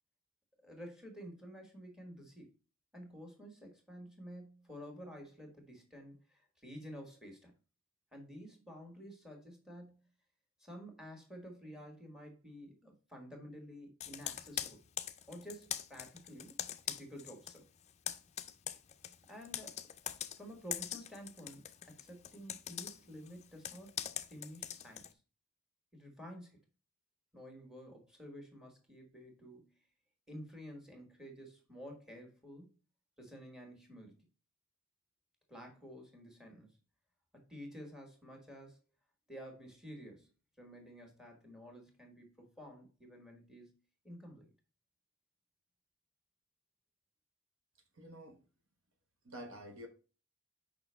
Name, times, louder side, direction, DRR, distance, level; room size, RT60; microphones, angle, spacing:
voice 1, 0.6-2.5 2.9-7.5 8.1-10.0 10.6-14.8 15.3-16.6 16.8-17.7 19.2-19.9 20.4-24.0 24.3-25.2 25.9-26.6 27.3-29.8 30.3-32.8 33.2-34.2 35.5-36.8 37.3-38.8 39.3-40.3 40.6-43.8 44.0-44.5, equal, 5° right, 1.5 m, -51 dB
Computer keyboard, 14.0-17.6 17.9-25.1, left 10 dB, 30° left, 0.4 m, -42 dB
voice 2, 48.0-48.4 49.2-49.9, equal, 70° right, 1.1 m, -48 dB
5.9 x 5.1 x 3.4 m
head